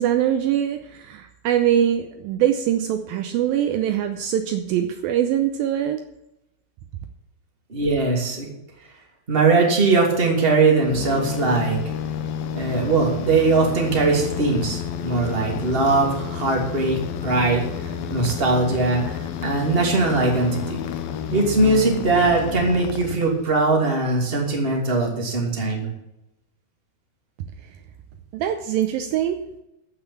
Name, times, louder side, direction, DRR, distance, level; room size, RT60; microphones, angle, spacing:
voice 1, 0.0-6.0 28.3-29.4, right 10 dB, 85° right, 7 dB, 2.1 m, -23 dB
voice 2, 7.7-8.5 9.3-11.8 12.5-17.6 18.1-20.8 21.3-25.9, right 3 dB, 15° right, 0 dB, 2.2 m, -20 dB
sound 1, 10.8-23.7, left 8 dB, 70° left, 2.3 m, -30 dB
14.5 x 5.9 x 7.0 m, 0.87 s
omnidirectional pair, 5.0 m